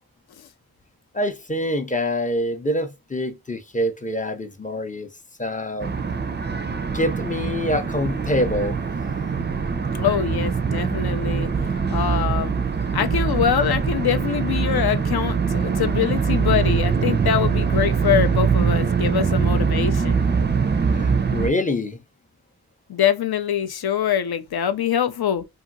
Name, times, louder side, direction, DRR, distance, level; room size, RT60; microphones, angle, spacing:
voice 1, 1.1-5.1 5.4-6.0 6.9-8.8 20.9-22.0, left 1 dB, 20° left, 0.5 m, -25 dB
sound 1, 5.8-21.5, right 6 dB, 30° right, 0.4 m, -23 dB
voice 2, 9.9-11.5 11.9-12.6 12.9-20.2 22.9-25.5, left 9 dB, 70° left, 0.5 m, -24 dB
2.7 x 2.5 x 2.5 m
wide cardioid pair, 45°, 39 cm